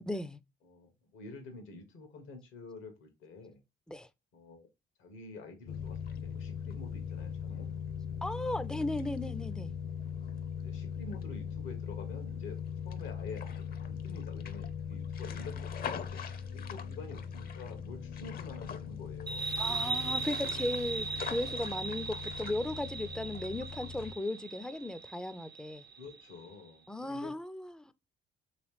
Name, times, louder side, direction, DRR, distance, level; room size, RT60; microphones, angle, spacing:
voice 1, 0.1-0.4 3.9-4.1 8.2-9.7 19.6-25.8 26.9-27.9, left 1 dB, 5° left, 0.3 m, -36 dB
voice 2, 0.6-3.6 4.3-4.7 5.0-7.7 10.6-12.6 12.8-16.2 16.5-19.5 26.0-27.4, left 3 dB, 90° left, 1.1 m, -48 dB
sound 1, 5.7-24.1, left 7 dB, 50° left, 0.6 m, -40 dB
sound 2, 19.3-26.5, right 4 dB, 55° right, 0.5 m, -38 dB
3.2 x 3.1 x 3.1 m
cardioid pair, 90°, 20 cm